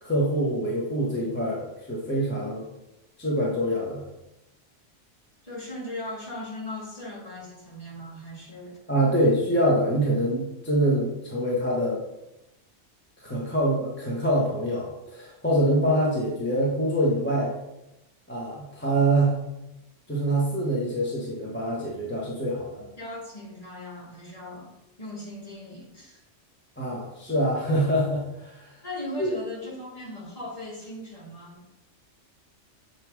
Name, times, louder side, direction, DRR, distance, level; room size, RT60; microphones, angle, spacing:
voice 1, 0.0-2.6 3.2-4.0 8.9-12.0 13.2-17.6 18.3-19.4 20.1-22.8 26.8-28.8 29.2-29.3, right 1 dB, 10° left, -5 dB, 1.1 m, -25 dB
voice 2, 5.4-8.8 23.0-24.7 25.0-26.2 28.8-31.7, left 1 dB, 30° left, -5 dB, 2.2 m, -38 dB
7.7 x 3.7 x 4.7 m, 0.91 s
omnidirectional pair, 1.3 m